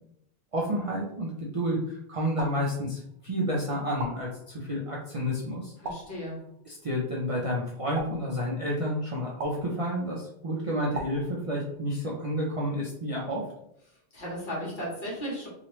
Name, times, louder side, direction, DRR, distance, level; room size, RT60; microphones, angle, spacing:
voice 1, 0.5-5.7 6.7-13.4, equal, 45° right, -4 dB, 0.4 m, -30 dB
sound 1, 2.4-3.3 4.0-4.9 5.8-6.7 7.9-8.9 9.4-10.2 10.9-11.9, right 2 dB, 70° right, 0.8 m, -41 dB
voice 2, 5.8-6.4 14.1-15.5, equal, 50° left, -5 dB, 1.2 m, -35 dB
3.0 x 2.4 x 3.0 m, 0.75 s
omnidirectional pair, 1.1 m